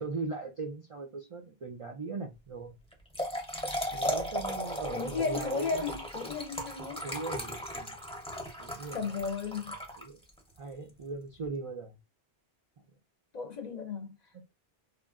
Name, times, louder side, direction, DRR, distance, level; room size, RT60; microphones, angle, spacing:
voice 1, 0.0-2.8 3.9-5.9 7.0-8.0 8.6-9.0 10.0-10.2 10.6-12.0 14.3-14.4, right 3 dB, 55° right, 0.3 m, -39 dB
Trickle dribble / Fill (with liquid), 2.9-10.4, equal, 5° left, 0.5 m, -36 dB
voice 2, 4.9-7.0 8.9-9.7 13.3-14.2, left 4 dB, 55° left, 0.5 m, -34 dB
2.9 x 2.4 x 2.4 m
omnidirectional pair, 1.1 m